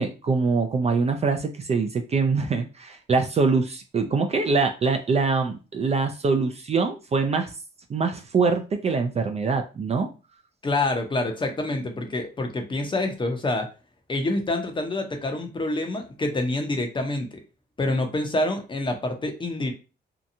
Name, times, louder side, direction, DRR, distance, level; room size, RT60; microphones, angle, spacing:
voice 1, 0.0-7.5 7.9-10.1, right 4 dB, 30° right, 5 dB, 0.4 m, -24 dB
voice 2, 10.6-13.7 14.1-17.4 17.8-19.7, left 2 dB, 25° left, 5 dB, 0.6 m, -27 dB
2.8 x 2.2 x 2.6 m, 0.32 s
cardioid pair, 90°, 20 cm